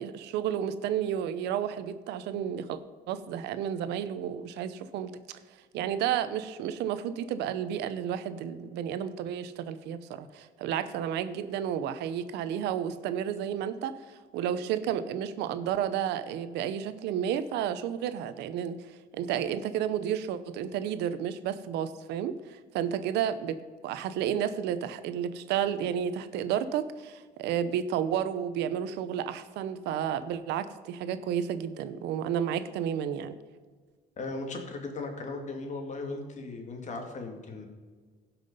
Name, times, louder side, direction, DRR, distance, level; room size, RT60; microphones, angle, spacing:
voice 1, 0.0-2.8 3.1-5.4 5.7-14.0 14.3-18.8 19.1-33.4, right 9 dB, 85° right, 12 dB, 0.8 m, -31 dB
voice 2, 34.2-37.7, left 3 dB, 45° left, 4 dB, 2.2 m, -37 dB
16.0 x 5.9 x 5.4 m, 1.5 s
cardioid pair, 110°, 17 cm